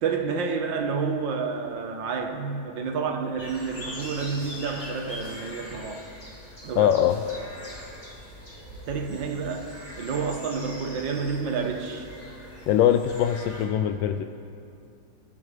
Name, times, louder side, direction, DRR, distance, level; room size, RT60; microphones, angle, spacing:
voice 1, 0.0-6.1 6.6-7.1 8.9-12.1, right 5 dB, 80° right, 5 dB, 1.8 m, -29 dB
sound 1, 3.4-13.7, left 1 dB, 20° left, 2.5 m, -42 dB
voice 2, 6.7-7.2 12.7-14.2, left 10 dB, 85° left, 8 dB, 1.3 m, -22 dB
28.0 x 11.0 x 3.3 m, 2.6 s
omnidirectional pair, 2.0 m